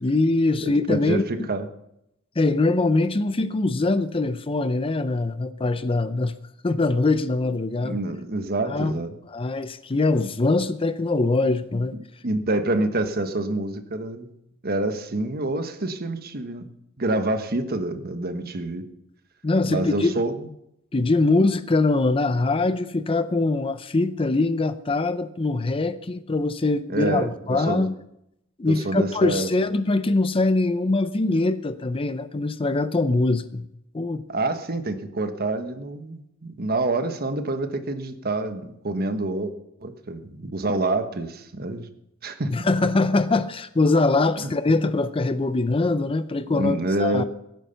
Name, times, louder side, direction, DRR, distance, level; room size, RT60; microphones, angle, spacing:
voice 1, 0.0-1.5 2.4-6.3 6.6-8.0 8.7-8.9 9.3-11.9 19.4-20.1 20.9-27.9 28.6-33.7 33.9-34.2 42.5-47.2, left 2 dB, 25° left, 12 dB, 0.5 m, -23 dB
voice 2, 0.6-1.7 7.8-9.1 12.2-14.3 14.6-16.7 17.0-18.8 19.7-20.5 26.9-27.8 28.6-29.5 34.3-39.5 39.8-41.9 42.2-42.5 44.4-44.5 46.5-47.2, right 2 dB, 45° right, 8 dB, 1.2 m, -27 dB
16.5 x 9.3 x 5.7 m, 0.81 s
head